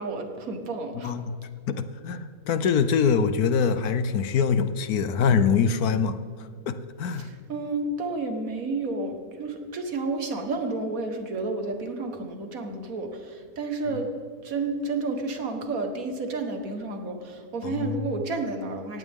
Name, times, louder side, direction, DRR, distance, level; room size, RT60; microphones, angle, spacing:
voice 1, 0.0-1.1 7.1-14.1 14.4-19.0, right 3 dB, 55° right, 5 dB, 1.9 m, -31 dB
voice 2, 1.0-1.3 1.7-6.2 6.7-7.3 17.6-17.9, left 6 dB, 65° left, 12 dB, 1.2 m, -24 dB
18.0 x 15.5 x 3.7 m, 2.1 s
omnidirectional pair, 1.8 m